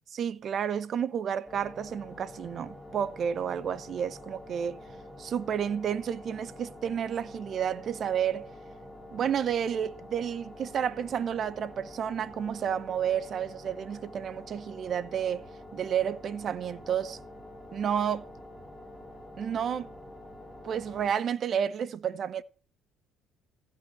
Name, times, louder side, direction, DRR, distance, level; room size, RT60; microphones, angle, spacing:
voice 1, 0.1-4.8 5.2-8.5 9.1-15.4 15.7-17.2 17.7-18.3 19.4-19.9 20.6-22.4, right 8 dB, 50° right, 0.8 m, -31 dB
sound 1, 1.5-21.1, left 1 dB, ahead, 3.7 m, -47 dB
15.5 x 5.7 x 7.7 m
supercardioid pair, 85°, 0 cm